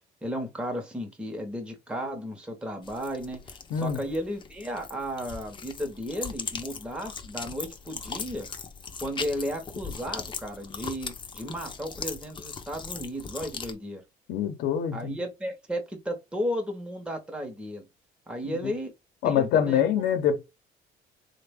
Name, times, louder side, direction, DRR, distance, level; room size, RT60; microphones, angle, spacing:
voice 1, 0.2-8.5 9.0-14.0 14.9-17.9 18.3-18.9 19.2-19.8 20.2-20.3, equal, 5° right, 0.8 m, -34 dB
sound 1, 2.8-13.7, left 5 dB, 30° left, 0.6 m, -39 dB
voice 2, 14.3-15.1 18.4-18.7 19.2-20.4, left 9 dB, 85° left, 0.7 m, -25 dB
3.2 x 2.1 x 3.4 m
cardioid pair, 110°, 17 cm